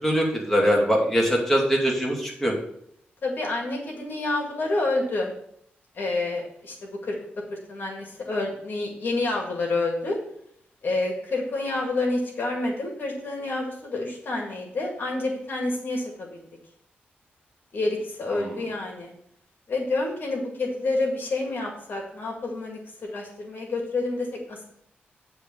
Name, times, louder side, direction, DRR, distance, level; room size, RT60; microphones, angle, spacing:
voice 1, 0.0-2.5, equal, 10° left, -2 dB, 2.4 m, -22 dB
voice 2, 3.2-5.3 5.9-7.2 7.5-10.2 10.8-16.5 17.7-19.1 19.7-24.6, left 2 dB, 60° left, 1 dB, 2.0 m, -28 dB
9.9 x 3.5 x 6.8 m, 0.70 s
cardioid pair, 80°, 4 cm